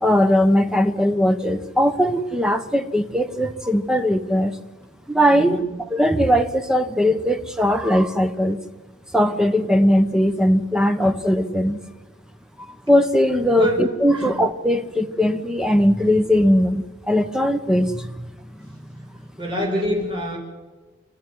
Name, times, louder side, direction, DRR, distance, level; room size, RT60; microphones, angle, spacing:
voice 1, 0.0-4.5 5.1-5.6 5.9-8.6 9.1-11.8 12.7-18.7 19.0-19.1, equal, 5° right, 8 dB, 1.1 m, -19 dB
voice 2, 5.3-5.6 13.6-13.8 14.2-14.3 19.4-20.4, right 1 dB, 25° right, -2 dB, 5.8 m, -25 dB
26.5 x 14.0 x 9.5 m, 1.2 s
head